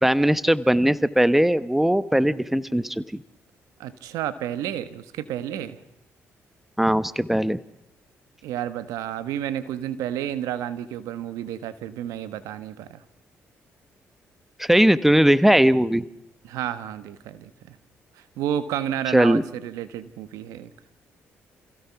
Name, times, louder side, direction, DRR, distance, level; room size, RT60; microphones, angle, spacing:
voice 1, 0.0-3.2 6.8-7.6 14.6-16.0 19.1-19.4, equal, 5° right, 16 dB, 1.0 m, -19 dB
voice 2, 3.8-5.8 8.4-13.0 16.4-17.7 18.4-20.7, right 10 dB, 85° right, 13 dB, 1.3 m, -31 dB
28.0 x 16.0 x 5.9 m, 0.86 s
supercardioid pair, 60°, 6 cm